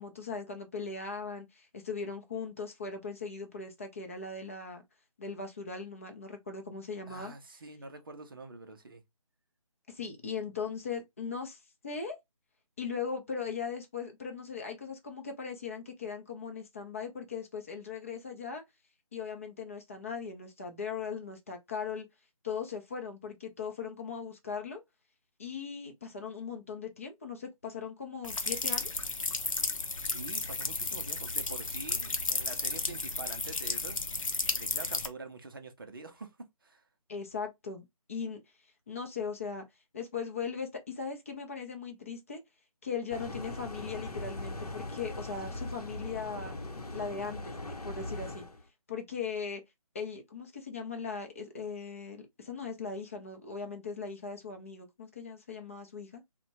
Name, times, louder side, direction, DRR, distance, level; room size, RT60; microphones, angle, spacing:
voice 1, 0.0-4.8 5.2-7.3 9.9-12.2 12.8-18.6 19.1-22.1 22.4-24.8 25.4-29.1 37.1-38.4 38.9-39.6 39.9-42.4 42.8-46.6 46.9-48.4 48.9-49.6 49.9-56.2, left 5 dB, 25° left, 0.5 m, -39 dB
voice 2, 7.1-9.0 30.0-34.0 34.5-36.8, right 3 dB, 35° right, 0.5 m, -46 dB
sound 1, 28.2-35.1, left 3 dB, 60° left, 0.7 m, -33 dB
sound 2, 43.1-48.6, left 2 dB, 85° left, 0.8 m, -40 dB
3.3 x 2.1 x 2.7 m
figure-of-eight pair, 155°, 19 cm